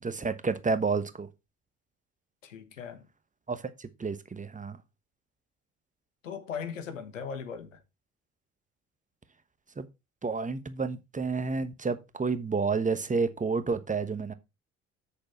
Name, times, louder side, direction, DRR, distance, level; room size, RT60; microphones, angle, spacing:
voice 1, 0.0-1.3 3.5-4.8 9.8-9.9 10.2-14.3, right 4 dB, 20° right, 1.2 m, -30 dB
voice 2, 2.4-3.0 6.2-7.8, left 6 dB, 85° left, 1.3 m, -38 dB
7.9 x 6.7 x 4.2 m
figure-of-eight pair, 55°, 38 cm